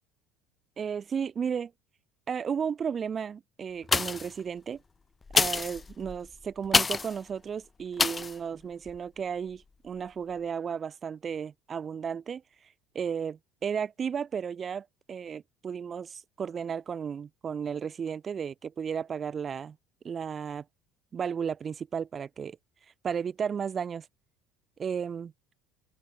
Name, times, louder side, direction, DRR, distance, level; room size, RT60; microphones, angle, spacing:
voice 1, 0.8-1.7 2.3-4.8 5.3-12.4 12.9-19.8 20.0-20.6 21.1-22.6 23.0-24.1 24.8-25.3, right 7 dB, 35° right, 2.5 m, -34 dB
sound 1, 3.8-4.4 5.2-7.2 8.0-8.4 8.9-9.0, left 4 dB, 25° left, 3.3 m, -27 dB
open air
hypercardioid pair, 75°, 0 cm